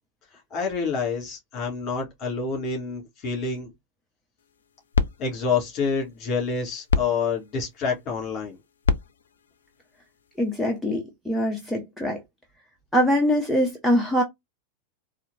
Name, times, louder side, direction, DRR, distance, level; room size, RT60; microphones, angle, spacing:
voice 1, 0.5-3.7 5.2-8.6, left 5 dB, 35° left, 2.2 m, -27 dB
sound 1, 4.4-10.8, left 5 dB, 65° left, 0.4 m, -31 dB
voice 2, 10.4-12.2 12.9-14.2, equal, ahead, 0.9 m, -23 dB
4.2 x 2.7 x 2.7 m
figure-of-eight pair, 90°, 0 cm